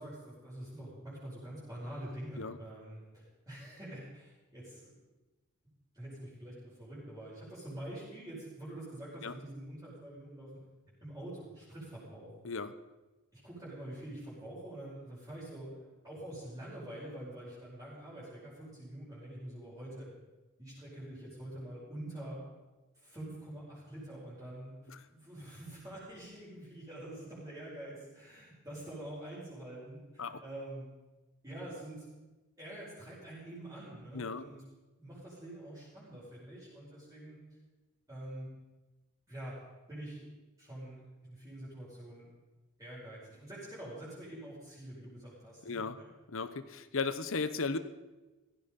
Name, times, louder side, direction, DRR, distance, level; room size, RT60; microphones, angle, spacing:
voice 1, 0.0-4.9 5.9-10.5 11.0-12.3 13.3-20.1 20.6-22.4 23.0-30.9 31.4-32.1 32.6-34.6 35.0-37.4 38.1-38.5 39.3-39.6 39.9-40.3 40.6-41.0 41.3-42.3 42.8-46.1, right 1 dB, 15° right, -9 dB, 5.4 m, -46 dB
voice 2, 34.1-34.4 45.6-46.0 46.3-47.8, left 4 dB, 65° left, 13 dB, 0.9 m, -36 dB
16.5 x 14.5 x 5.3 m, 1.2 s
head